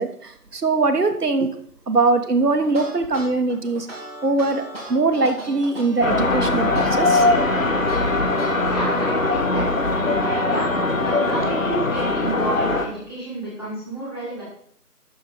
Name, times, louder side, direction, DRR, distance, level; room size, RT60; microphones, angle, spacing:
voice 1, 0.0-1.5 1.9-3.9 4.2-4.6 4.9-7.3, right 3 dB, 75° right, 7 dB, 1.4 m, -21 dB
sound 1, 2.6-8.7, right 2 dB, 40° right, 2.7 m, -37 dB
sound 2, 6.0-12.9, left 2 dB, 55° left, 1.3 m, -21 dB
voice 2, 8.6-10.7 11.0-14.4, right 1 dB, 15° left, -8 dB, 2.6 m, -30 dB
12.0 x 5.1 x 5.2 m, 0.64 s
figure-of-eight pair, 175°, 47 cm